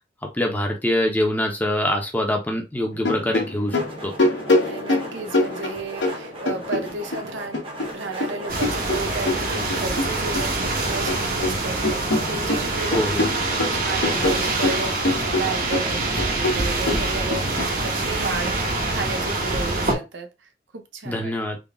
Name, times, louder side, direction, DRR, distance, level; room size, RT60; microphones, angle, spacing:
voice 1, 0.3-4.1 12.9-13.3 21.1-21.6, left 1 dB, 10° left, 0.7 m, -24 dB
sound 1, 2.9-7.2 7.5-10.5 10.8-11.6 11.8-17.7, left 2 dB, 80° left, 1.1 m, -25 dB
sound 2, 3.7-9.7, right 1 dB, 30° right, 0.9 m, -37 dB
voice 2, 4.6-7.6 7.9-13.1 13.7-21.3, right 3 dB, 85° right, 0.7 m, -33 dB
sound 3, 8.5-19.9, right 2 dB, 50° right, 0.9 m, -25 dB
3.9 x 2.4 x 3.5 m
head